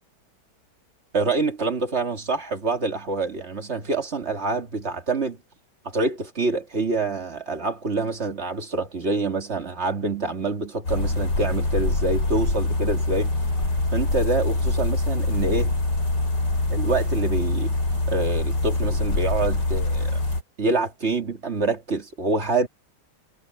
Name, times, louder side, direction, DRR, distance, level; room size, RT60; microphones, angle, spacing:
voice 1, 1.1-5.4 5.8-13.3 13.9-15.8 16.7-17.7 18.1-20.2 20.6-22.7, right 3 dB, 40° right, 2.6 m, -26 dB
sound 1, 10.8-20.4, left 2 dB, 85° left, 6.1 m, -24 dB
omnidirectional pair, 1.8 m